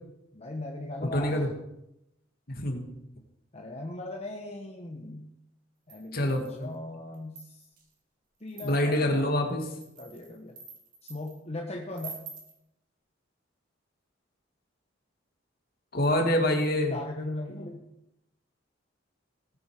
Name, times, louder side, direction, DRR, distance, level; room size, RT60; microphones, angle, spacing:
voice 1, 0.3-1.5 3.5-5.3 5.9-7.7 8.4-9.3 10.0-10.6 11.0-12.3 16.7-17.9, left 2 dB, 35° left, 1 dB, 1.2 m, -38 dB
voice 2, 1.1-1.5 2.5-2.9 6.1-6.5 8.6-9.6 15.9-16.9, left 1 dB, 50° left, 3 dB, 2.2 m, -26 dB
sound 1, 5.9-6.6 7.1-7.8 8.5-9.0 9.6-11.4 11.9-12.6, right 5 dB, 45° right, 2.7 m, -46 dB
18.5 x 8.0 x 5.0 m, 0.85 s
head